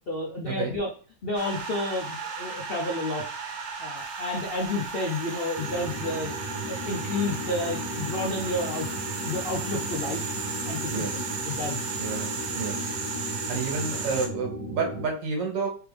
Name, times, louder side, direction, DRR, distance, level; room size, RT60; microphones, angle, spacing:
voice 1, 0.1-0.9 1.2-3.2 3.8-6.3 6.7-8.9 9.2-10.3 10.7-11.8, left 2 dB, 70° left, -1 dB, 0.5 m, -31 dB
sound 1, 1.3-14.3, right 5 dB, 60° right, 0.7 m, -35 dB
sound 2, 5.6-15.1, equal, 30° right, 0.8 m, -36 dB
voice 2, 10.9-11.3 12.0-12.9 13.5-15.7, right 4 dB, 85° right, 1 dB, 1.8 m, -30 dB
3.5 x 3.4 x 3.3 m, 0.38 s
omnidirectional pair, 1.9 m